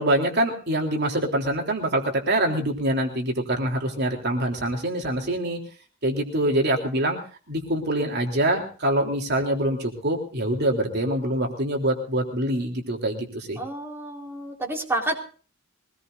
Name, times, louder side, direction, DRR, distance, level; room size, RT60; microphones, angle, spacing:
voice 1, 0.0-5.6 6.0-7.2 7.5-13.6, right 1 dB, 55° right, 2 dB, 3.5 m, -25 dB
voice 2, 13.6-15.2, right 1 dB, 10° right, 0 dB, 4.3 m, -29 dB
23.5 x 20.0 x 2.7 m, 0.39 s
head